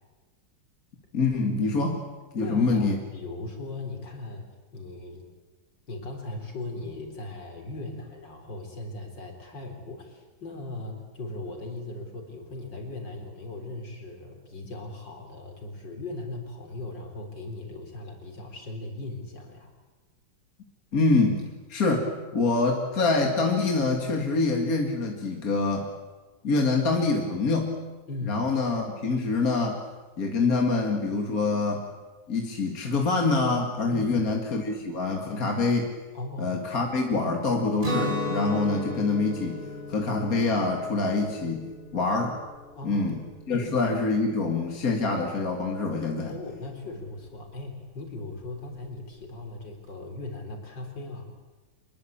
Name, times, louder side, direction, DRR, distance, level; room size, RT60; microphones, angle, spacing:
voice 1, 1.1-2.0 2.3-3.0 20.9-21.4 21.7-25.9 26.4-27.8 28.3-29.8 30.2-31.9 32.3-35.9 36.4-39.6 39.9-42.4 42.8-43.2 43.5-46.3, left 3 dB, 45° left, 2 dB, 2.5 m, -25 dB
voice 2, 2.4-5.3 5.9-19.7 28.1-28.5 33.9-34.3 36.1-36.6 42.7-43.1 43.5-43.7 46.3-51.3, left 2 dB, 65° left, 3 dB, 4.9 m, -38 dB
Guitar, 37.8-43.6, left 2 dB, 25° right, 3.5 m, -34 dB
25.5 x 21.0 x 8.7 m, 1.3 s
omnidirectional pair, 2.1 m